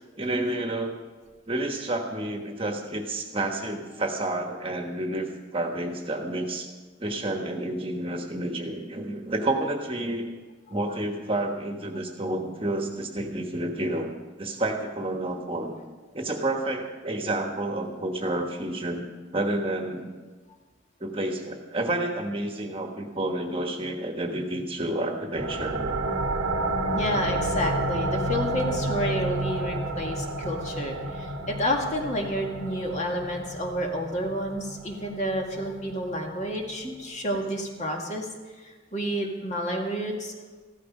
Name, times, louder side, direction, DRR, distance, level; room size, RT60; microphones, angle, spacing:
voice 1, 0.2-1.0 1.5-6.7 7.0-10.3 10.7-14.1 14.4-15.8 16.1-19.1 19.3-20.1 21.0-25.9 36.8-36.9, right 1 dB, 30° right, 3 dB, 1.3 m, -30 dB
sound 1, 25.3-36.7, right 2 dB, 90° right, 1.1 m, -31 dB
voice 2, 26.9-38.3 38.6-40.3, equal, 35° left, 1 dB, 2.0 m, -30 dB
15.0 x 12.5 x 5.4 m, 1.3 s
head